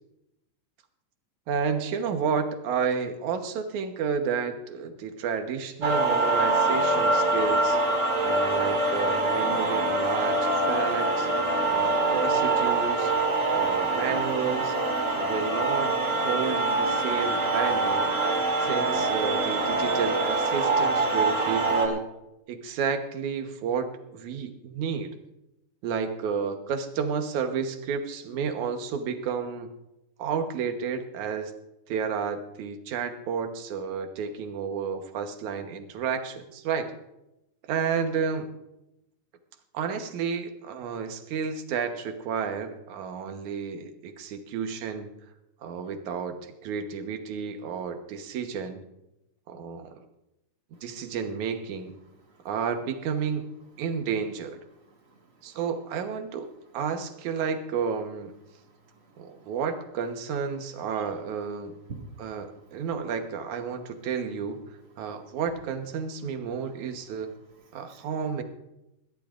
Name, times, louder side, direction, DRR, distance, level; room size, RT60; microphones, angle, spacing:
voice 1, 1.5-7.8 8.2-11.3 11.7-13.1 13.5-14.8 15.1-18.1 18.6-22.1 22.5-25.1 25.8-29.7 30.2-31.5 31.9-36.9 37.7-38.5 39.7-45.1 45.6-48.8 49.5-50.0 50.8-51.9 52.5-53.5 53.8-54.6 55.4-58.3 59.2-61.7 62.2-64.6 65.0-67.3 67.7-68.4, right 6 dB, 70° right, 6 dB, 2.4 m, -31 dB
sound 1, 5.8-21.9, right 2 dB, 30° right, 2.0 m, -25 dB
voice 2, 55.1-55.5 58.5-59.5 61.9-62.2 67.7-68.1, right 3 dB, 45° right, 0 dB, 2.5 m, -47 dB
22.0 x 15.5 x 2.5 m, 0.90 s
omnidirectional pair, 3.7 m